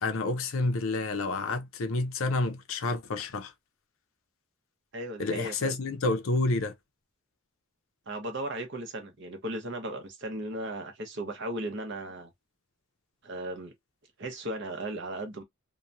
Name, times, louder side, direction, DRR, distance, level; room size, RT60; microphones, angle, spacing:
voice 1, 0.0-3.5 5.2-6.7, left 2 dB, 70° left, 0.6 m, -29 dB
voice 2, 4.9-5.8 8.1-12.3 13.2-13.7 14.2-15.4, right 1 dB, 55° right, 0.9 m, -36 dB
2.9 x 2.2 x 2.5 m
head